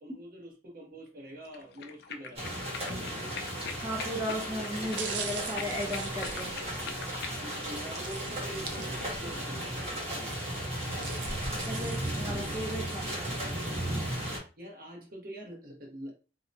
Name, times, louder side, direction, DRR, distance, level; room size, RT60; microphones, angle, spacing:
voice 1, 0.0-2.4 4.8-4.9 7.4-10.3 12.3-12.5 14.6-16.1, right 1 dB, 55° right, 0.9 m, -45 dB
sound 1, 1.5-7.6, left 6 dB, 60° left, 0.3 m, -43 dB
sound 2, 2.4-14.4, equal, 35° right, 1.1 m, -35 dB
voice 2, 3.8-6.6 10.8-11.2 11.7-13.7, equal, 15° right, 0.5 m, -36 dB
sound 3, 4.7-7.2 7.9-9.4 9.8-9.9 10.6-12.8 13.3-13.4, right 4 dB, 75° right, 0.5 m, -42 dB
2.7 x 2.1 x 2.6 m
head